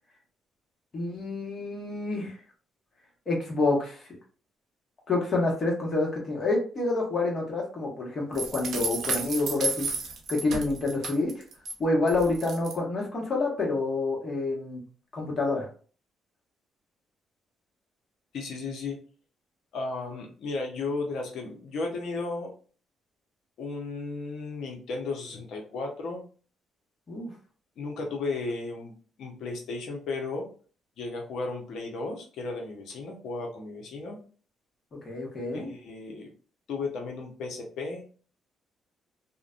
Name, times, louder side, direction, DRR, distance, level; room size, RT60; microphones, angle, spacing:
voice 1, 0.9-2.4 3.3-4.1 5.1-9.9 10.3-11.3 11.8-14.8 15.1-15.7 27.1-27.3 34.9-35.7, left 2 dB, 50° left, -1 dB, 1.2 m, -28 dB
sound 1, 8.3-11.7 12.1-12.7, right 4 dB, 65° right, 0.5 m, -32 dB
voice 2, 18.3-19.0 19.7-22.5 23.6-26.2 27.8-28.9 29.2-30.5 31.0-34.2 35.5-36.3 36.7-38.0, left 3 dB, 70° left, 1 dB, 0.8 m, -34 dB
2.5 x 2.2 x 2.5 m, 0.40 s
supercardioid pair, 60°, 0 cm